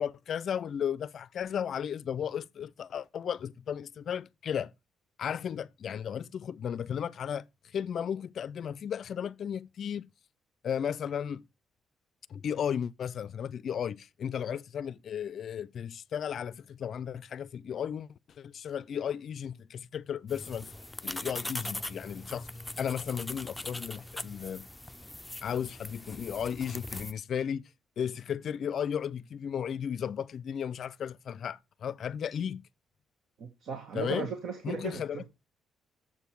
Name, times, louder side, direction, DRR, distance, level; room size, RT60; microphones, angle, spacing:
voice 1, 0.0-4.7 5.2-7.5 7.7-10.1 10.6-11.4 12.3-18.1 18.4-20.7 21.0-22.5 22.8-24.7 25.4-27.7 28.0-32.7 33.9-34.3 34.6-35.3, left 8 dB, 60° left, 0.4 m, -34 dB
sound 1, 20.3-27.1, left 1 dB, 10° left, 0.5 m, -41 dB
voice 2, 33.4-35.3, right 6 dB, 70° right, 1.5 m, -37 dB
7.3 x 7.0 x 4.5 m
cardioid pair, 90°, 0 cm